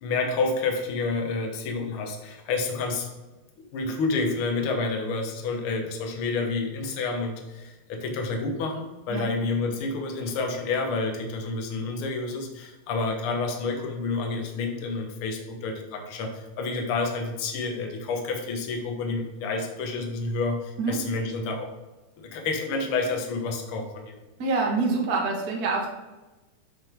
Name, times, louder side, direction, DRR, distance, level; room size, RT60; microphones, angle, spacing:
voice 1, 0.0-3.1 3.7-21.7 22.2-24.0, left 3 dB, 60° left, 3 dB, 1.5 m, -29 dB
voice 2, 24.4-25.9, right 3 dB, 55° right, -1 dB, 1.1 m, -26 dB
8.4 x 6.2 x 3.5 m, 1.1 s
omnidirectional pair, 3.8 m